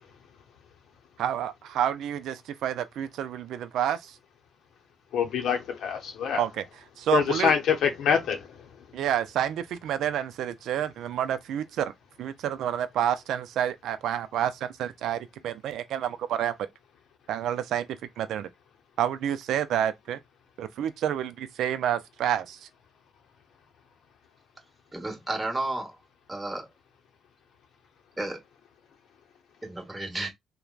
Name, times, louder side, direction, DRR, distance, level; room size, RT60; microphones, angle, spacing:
voice 1, 1.2-4.2 6.4-6.6 7.0-7.5 8.9-11.9 12.2-16.5 17.3-17.9 18.2-18.5 19.0-20.2 20.6-22.7, right 10 dB, 80° right, 0.3 m, -29 dB
voice 2, 5.1-6.4 7.1-8.5, left 7 dB, 80° left, 0.6 m, -25 dB
voice 3, 24.9-26.0 26.3-26.7 28.2-28.4 29.6-30.3, right 2 dB, 15° right, 1.0 m, -32 dB
3.1 x 2.1 x 2.3 m
cardioid pair, 90°, 0 cm